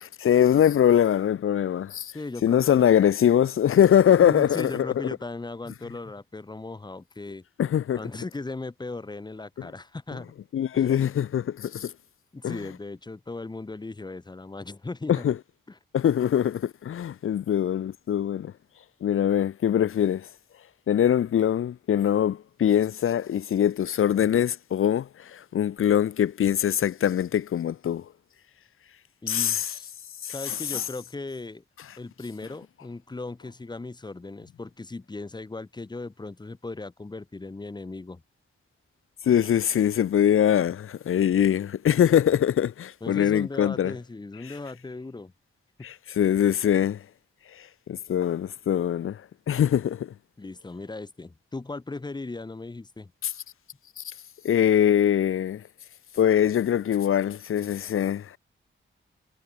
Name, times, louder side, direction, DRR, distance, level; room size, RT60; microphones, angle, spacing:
voice 1, 0.0-2.1 2.4-4.9 7.6-8.0 10.5-11.9 12.4-12.6 15.1-15.3 15.9-18.5 19.0-20.2 20.9-28.0 29.3-29.6 30.2-30.3 30.7-30.8 39.3-43.9 45.8-47.0 47.9-49.2 49.5-50.1 54.0-54.1 54.4-55.6 56.2-58.4, left 9 dB, 90° left, 1.1 m, -22 dB
voice 2, 2.1-3.1 4.2-7.4 7.9-10.3 10.7-10.9 12.3-15.3 15.7-15.8 29.2-29.9 30.3-31.6 32.0-38.2 43.0-45.3 50.4-53.1, left 3 dB, 20° left, 4.3 m, -37 dB
wide cardioid pair, 175°, 21 cm